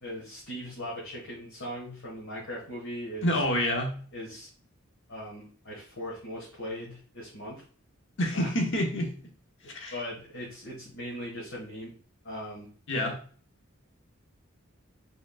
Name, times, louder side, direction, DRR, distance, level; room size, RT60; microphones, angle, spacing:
voice 1, 0.0-3.3 4.1-4.5 5.1-7.6 8.3-8.5 9.9-11.9 12.2-12.7 12.9-13.1, equal, 85° left, -6 dB, 1.6 m, -39 dB
voice 2, 3.2-4.0 8.2-9.1 9.7-9.9 12.9-13.2, equal, 60° left, 2 dB, 1.0 m, -27 dB
5.1 x 3.7 x 2.4 m, 0.43 s
head